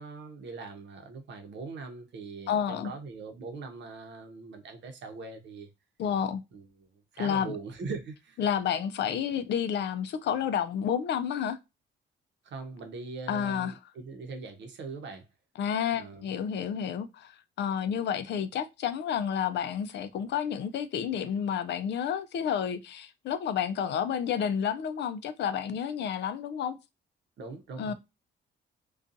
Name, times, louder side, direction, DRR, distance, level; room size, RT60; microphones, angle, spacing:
voice 1, 0.0-5.7 6.5-6.9 7.1-8.4 12.4-15.2 16.0-16.3 27.4-27.9, right 4 dB, 65° right, 0.7 m, -41 dB
voice 2, 2.5-2.9 6.0-6.4 7.2-7.6 8.4-11.6 13.3-13.7 15.6-26.8 27.8-27.9, left 8 dB, 60° left, 0.4 m, -30 dB
2.5 x 2.3 x 2.5 m
cardioid pair, 90°, 20 cm